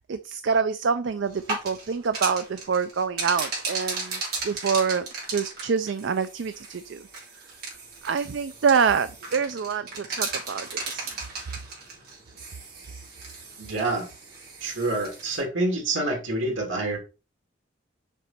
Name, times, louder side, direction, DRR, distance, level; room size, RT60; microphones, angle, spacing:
voice 1, 0.1-7.0 8.0-11.1, right 6 dB, 70° right, 0.4 m, -26 dB
sound 1, 1.3-15.4, right 4 dB, 50° right, 3.5 m, -36 dB
voice 2, 13.6-14.1 14.6-17.0, right 2 dB, 85° right, 2.7 m, -27 dB
6.6 x 5.1 x 4.3 m
head